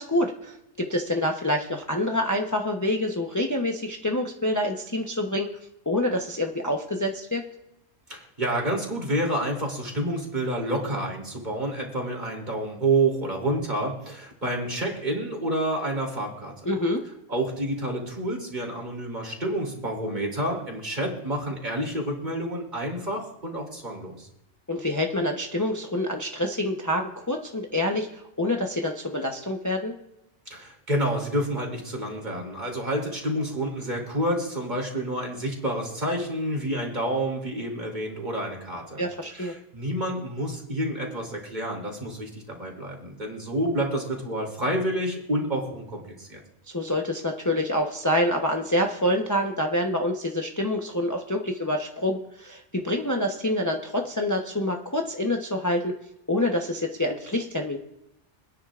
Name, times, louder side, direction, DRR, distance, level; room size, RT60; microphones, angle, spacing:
voice 1, 0.0-5.5 5.9-7.4 16.6-17.0 24.7-29.9 39.0-39.5 46.7-55.9 56.3-57.8, left 1 dB, 15° left, 2 dB, 0.9 m, -27 dB
voice 2, 8.1-16.5 17.3-24.3 30.5-39.0 39.3-46.4, right 1 dB, 40° right, -1 dB, 3.3 m, -29 dB
26.5 x 10.0 x 2.5 m, 0.83 s
omnidirectional pair, 1.2 m